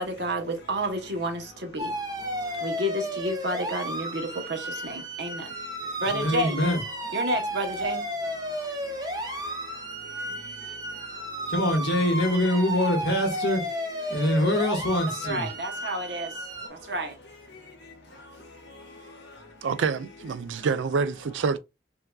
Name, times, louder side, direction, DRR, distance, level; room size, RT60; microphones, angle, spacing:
voice 1, 0.0-2.0 2.6-5.5 6.0-6.6 7.1-8.0 15.2-16.3 16.7-17.1, right 1 dB, 70° right, 0.9 m, -30 dB
sound 1, 1.8-16.7, equal, 20° right, 0.6 m, -33 dB
voice 2, 6.0-6.8 11.5-13.6 14.1-15.4, left 1 dB, 70° left, 1.5 m, -24 dB
voice 3, 19.6-21.6, right 5 dB, 90° right, 0.4 m, -27 dB
4.5 x 2.6 x 2.3 m
head